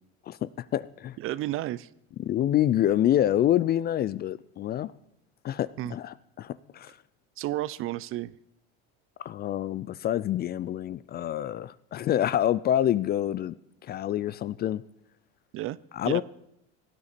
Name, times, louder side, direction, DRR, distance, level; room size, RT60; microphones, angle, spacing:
voice 1, 0.3-1.2 2.2-4.9 5.4-7.0 9.2-13.5 13.9-14.8 15.9-16.2, left 11 dB, 30° left, 19 dB, 0.4 m, -27 dB
voice 2, 1.2-1.9 5.8-5.9 7.4-8.4 15.5-15.8 16.0-16.2, right 15 dB, 45° right, 20 dB, 0.5 m, -32 dB
17.0 x 9.6 x 4.2 m, 0.77 s
supercardioid pair, 110°, 31 cm